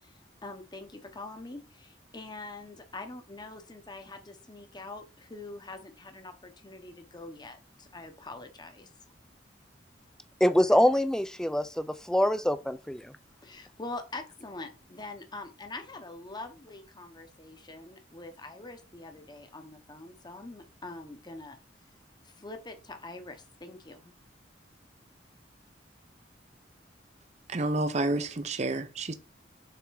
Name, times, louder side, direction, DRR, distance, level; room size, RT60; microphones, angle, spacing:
voice 1, 0.0-8.9 13.4-21.6 22.2-24.1, left 2 dB, 25° left, 0.9 m, -44 dB
voice 2, 10.4-13.1, equal, 5° left, 0.4 m, -25 dB
voice 3, 27.5-29.1, right 2 dB, 35° right, 0.6 m, -29 dB
6.8 x 3.5 x 4.7 m
head